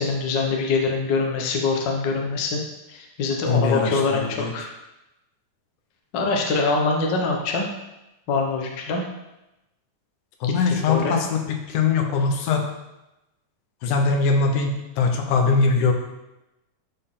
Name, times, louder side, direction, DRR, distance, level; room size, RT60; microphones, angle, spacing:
voice 1, 0.0-2.6 2.9-4.6 6.1-7.7 8.3-9.0 10.7-11.2, left 4 dB, 55° left, 0 dB, 1.3 m, -24 dB
voice 2, 3.5-4.5 10.4-11.4 11.7-12.6 13.8-15.9, left 4 dB, 85° left, 3 dB, 2.5 m, -21 dB
12.0 x 4.5 x 3.8 m, 0.95 s
omnidirectional pair, 3.5 m